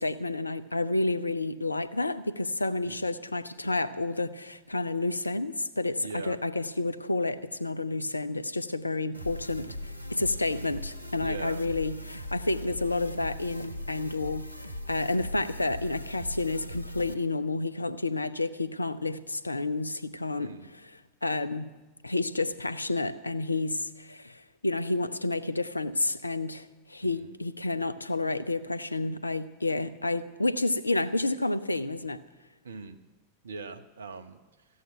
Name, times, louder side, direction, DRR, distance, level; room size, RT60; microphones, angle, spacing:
voice 1, 0.0-21.7 22.0-32.2, left 2 dB, 80° left, 14 dB, 0.6 m, -30 dB
voice 2, 6.0-6.4 11.2-11.6 15.2-15.4 20.4-20.7 27.0-27.3 32.6-33.0 33.4-34.4, right 4 dB, 70° right, 9 dB, 1.1 m, -41 dB
sound 1, 9.1-17.1, left 1 dB, 90° right, 0.9 m, -40 dB
14.5 x 8.6 x 8.8 m, 1.2 s
figure-of-eight pair, 90°, 0 cm